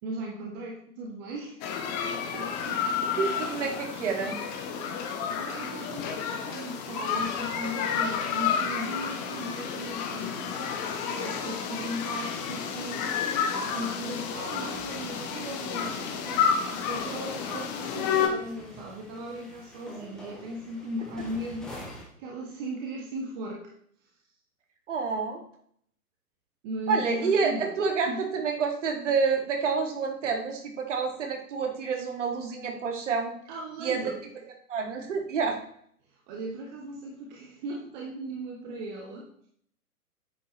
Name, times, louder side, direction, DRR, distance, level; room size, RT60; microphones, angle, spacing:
voice 1, 0.0-1.6 2.3-2.9 5.4-10.5 11.2-13.2 13.7-21.8 22.2-23.7 24.0-24.1 26.6-27.6 28.0-28.2 33.5-34.2 36.1-39.5, right 1 dB, 30° right, -1 dB, 1.6 m, -37 dB
sound 1, 1.6-18.3, left 7 dB, 25° left, 1.3 m, -31 dB
voice 2, 3.2-4.4 24.9-25.4 26.9-33.3 33.8-34.0 34.7-35.6, right 5 dB, 50° right, 2 dB, 2.4 m, -28 dB
sound 2, 14.7-22.1, left 1 dB, ahead, 0.5 m, -46 dB
9.6 x 8.2 x 3.3 m, 0.63 s
figure-of-eight pair, 115°, 46 cm